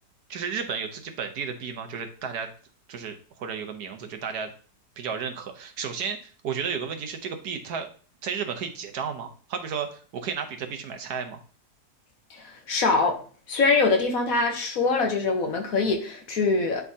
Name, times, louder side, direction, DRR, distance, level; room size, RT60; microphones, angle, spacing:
voice 1, 0.3-2.5 2.9-4.5 5.0-7.9 8.2-11.4, right 6 dB, 70° right, 6 dB, 1.4 m, -33 dB
voice 2, 12.3-13.2 13.5-16.8, left 3 dB, 60° left, 4 dB, 1.4 m, -23 dB
10.5 x 3.6 x 2.7 m, 0.40 s
omnidirectional pair, 1.8 m